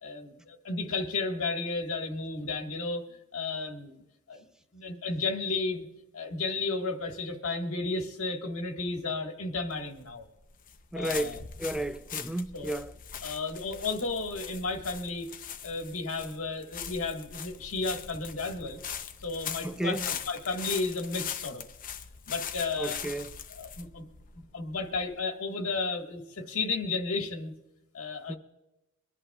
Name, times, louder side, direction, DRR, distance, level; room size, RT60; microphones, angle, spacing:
voice 1, 0.0-3.0 3.3-4.0 4.3-4.5 4.7-5.8 6.1-10.2 10.9-11.4 12.5-12.8 13.2-15.3 15.6-18.8 19.2-21.6 22.3-23.0 23.5-24.0 24.5-27.5 27.9-28.4, left 3 dB, 85° left, 1.7 m, -33 dB
sound 1, 9.7-25.2, left 8 dB, 40° left, 0.7 m, -41 dB
voice 2, 10.9-12.9 19.6-20.1 22.8-23.4 28.3-28.4, right 1 dB, 5° right, 0.3 m, -33 dB
24.0 x 11.0 x 2.4 m
head